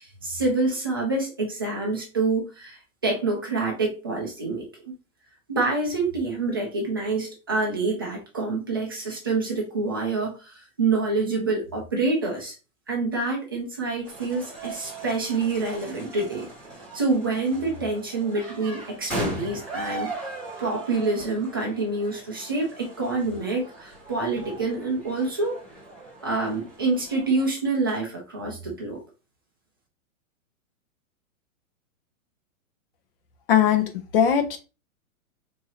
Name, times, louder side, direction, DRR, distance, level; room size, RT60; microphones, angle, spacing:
voice 1, 0.0-4.9 5.5-12.5 12.9-16.5 16.9-20.1 20.6-25.6 26.2-29.0, right 3 dB, 20° right, -1 dB, 0.3 m, -27 dB
sound 1, 14.0-27.5, right 2 dB, 5° left, 1.4 m, -38 dB
voice 2, 33.5-34.6, left 9 dB, 45° left, 7 dB, 0.7 m, -20 dB
4.0 x 2.8 x 2.8 m, 0.31 s
hypercardioid pair, 160°, 42 cm